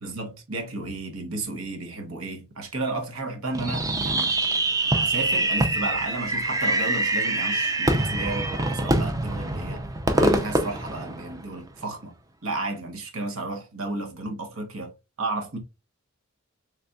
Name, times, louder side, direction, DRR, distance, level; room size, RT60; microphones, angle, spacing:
voice 1, 0.0-4.3 4.9-9.9 10.2-12.1 12.4-14.9 15.2-15.6, right 2 dB, 75° right, 1.0 m, -32 dB
Fireworks, 3.5-11.7, right 2 dB, 15° right, 0.4 m, -25 dB
4.0 x 3.3 x 2.3 m
head